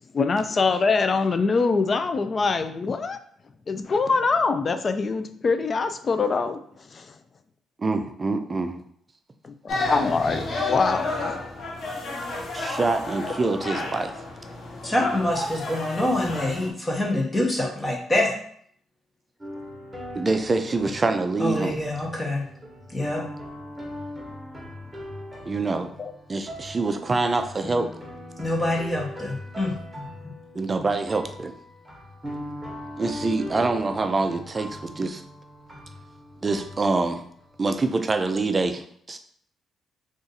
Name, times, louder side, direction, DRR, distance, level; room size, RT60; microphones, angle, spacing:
voice 1, 0.1-3.2 3.7-6.6 6.9-7.1 9.4-11.4 26.0-26.1, left 4 dB, 40° left, 9 dB, 0.3 m, -24 dB
voice 2, 7.8-8.8 12.5-14.1 20.1-21.8 25.5-25.9 26.3-27.9 30.5-31.5 33.0-35.2 36.4-37.2 37.6-39.2, right 3 dB, 30° right, 7 dB, 0.4 m, -25 dB
sound 1, 9.7-16.7, left 2 dB, 55° left, 0.7 m, -31 dB
voice 3, 14.8-18.3 21.4-22.4 22.9-23.2 28.4-30.0, left 1 dB, 15° left, -1 dB, 0.8 m, -25 dB
sound 2, 19.4-38.0, left 1 dB, 10° right, 1.1 m, -40 dB
2.6 x 2.5 x 3.9 m, 0.63 s
cardioid pair, 90°, 0 cm